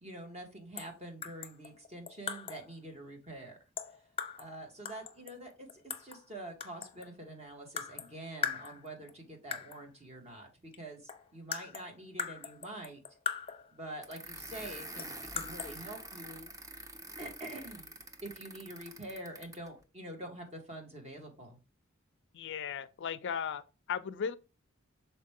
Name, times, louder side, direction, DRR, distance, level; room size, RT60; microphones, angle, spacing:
voice 1, 0.0-3.6 4.4-13.0 13.7-16.5 17.2-17.9 18.2-21.6, right 1 dB, 30° right, 1.8 m, -46 dB
sound 1, 0.8-1.0 1.2-2.7 3.8-4.5 4.8-6.2 6.6-7.2 7.8-8.1 8.4-9.1 9.5-9.8 10.7-10.8 11.1-13.7 15.0-15.7, left 7 dB, 25° left, 0.8 m, -40 dB
sound 2, 14.0-19.7, right 1 dB, 15° right, 0.8 m, -46 dB
voice 2, 22.3-24.4, left 7 dB, 60° left, 0.4 m, -36 dB
6.5 x 4.4 x 3.6 m
head